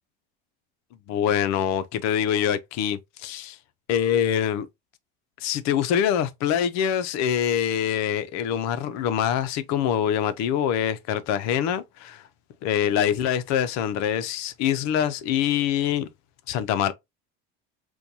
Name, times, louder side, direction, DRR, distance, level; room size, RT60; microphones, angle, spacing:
voice 1, 1.1-3.6 3.9-4.7 5.4-12.2 12.6-16.1 16.5-16.9, left 9 dB, 65° left, 0.6 m, -24 dB
4.4 x 2.3 x 2.6 m
cardioid pair, 130°, 29 cm